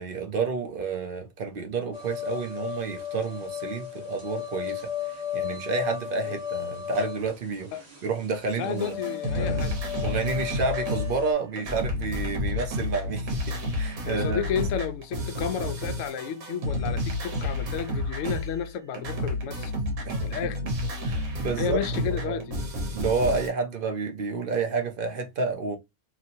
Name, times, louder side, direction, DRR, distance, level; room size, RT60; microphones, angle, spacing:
voice 1, 0.0-7.7 8.0-9.0 9.4-9.8 10.0-14.4 20.0-20.7 21.0-22.4 22.9-25.8, right 4 dB, 55° right, 0.6 m, -30 dB
sound 1, 1.9-11.3, left 11 dB, 30° right, 1.2 m, -35 dB
voice 2, 8.5-9.9 14.0-19.7 20.2-20.6 21.6-22.6, left 8 dB, 70° left, 0.9 m, -32 dB
sound 2, 8.8-11.3 11.6-18.7 18.9-23.5, left 1 dB, 80° right, 1.4 m, -30 dB
3.0 x 2.8 x 2.5 m
omnidirectional pair, 1.5 m